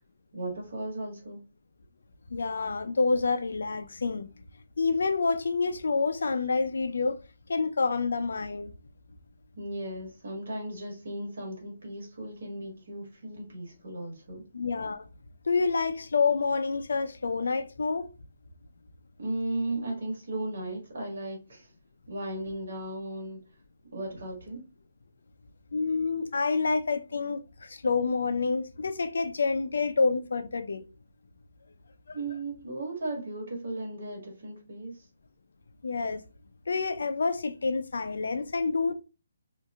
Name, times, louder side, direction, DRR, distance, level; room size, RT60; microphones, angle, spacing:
voice 1, 0.3-1.4 9.5-14.4 19.2-21.7 22.1-23.4 23.9-24.6 32.1-35.1, right 1 dB, 70° right, 1.5 m, -36 dB
voice 2, 2.3-4.3 4.8-7.2 7.5-8.7 14.5-15.0 15.5-18.1 25.7-30.9 32.1-32.2 35.8-36.2 36.7-38.9, left 4 dB, 70° left, 0.4 m, -28 dB
2.8 x 2.4 x 2.3 m
hypercardioid pair, 180°, 0 cm